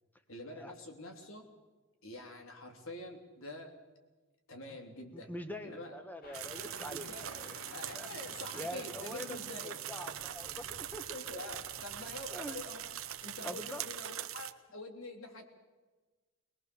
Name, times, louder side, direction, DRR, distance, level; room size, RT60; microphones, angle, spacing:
voice 1, 0.3-1.4 2.0-3.8 4.5-5.3 5.6-5.9 6.9-9.7 11.1-13.0 13.2-15.5, left 2 dB, 75° left, 4 dB, 3.2 m, -46 dB
voice 2, 5.1-7.6 7.9-8.1 8.5-11.0 12.3-12.6 13.4-13.8, equal, 10° left, 7 dB, 1.5 m, -44 dB
sound 1, 6.2-13.5, left 1 dB, 45° left, 2.2 m, -55 dB
sound 2, 6.3-14.5, right 11 dB, 75° right, 1.0 m, -42 dB
22.5 x 20.5 x 7.0 m, 1.3 s
head